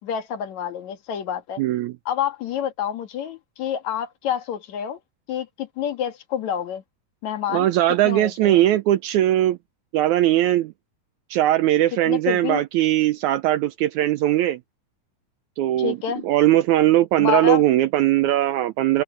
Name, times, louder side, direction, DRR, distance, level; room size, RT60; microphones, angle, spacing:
voice 1, 0.0-1.6 2.1-5.0 5.3-6.8 7.2-7.7 8.0-8.6 12.1-12.6 15.8-16.2 17.2-17.6, left 9 dB, 60° left, 2.9 m, -28 dB
voice 2, 1.6-1.9 7.5-9.6 9.9-10.7 11.3-14.6 15.6-16.0 16.2-19.0, right 14 dB, 80° right, 1.7 m, -19 dB
omnidirectional pair, 4.0 m